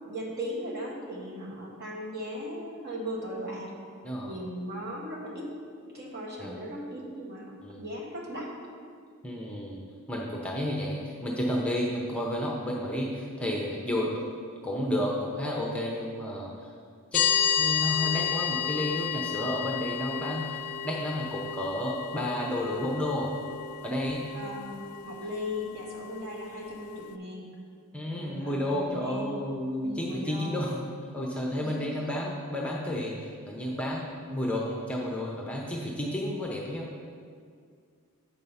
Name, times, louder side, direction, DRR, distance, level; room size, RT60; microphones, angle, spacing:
voice 1, 0.0-3.7 4.2-5.5 5.9-8.5 24.3-27.5 28.0-29.5 29.8-30.6 31.6-32.0, equal, 45° right, -2 dB, 1.3 m, -38 dB
voice 2, 4.0-4.4 6.4-6.5 7.6-7.8 9.2-9.8 10.1-14.2 14.6-16.7 17.1-17.3 17.6-23.3 23.8-24.2 27.9-30.8 31.1-36.9, left 1 dB, 5° left, -2 dB, 0.6 m, -31 dB
sound 1, 17.1-27.2, left 8 dB, 75° left, 0.4 m, -32 dB
7.6 x 4.6 x 5.5 m, 2.2 s
head